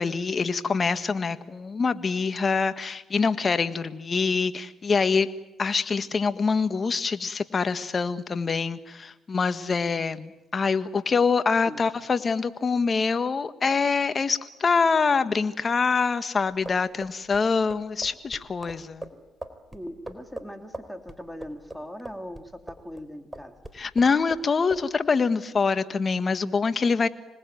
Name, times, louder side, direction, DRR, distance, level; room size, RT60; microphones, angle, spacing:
voice 1, 0.0-5.3 5.6-19.1 23.7-27.1, left 5 dB, 40° left, 11 dB, 1.6 m, -25 dB
voice 2, 11.6-12.1 19.7-23.5, equal, 5° left, 5 dB, 3.2 m, -40 dB
sound 1, 16.5-23.0 23.3-24.4 24.7-24.9, right 1 dB, 10° right, 4.1 m, -41 dB
26.5 x 20.0 x 9.3 m, 0.99 s
supercardioid pair, 60°, 0 cm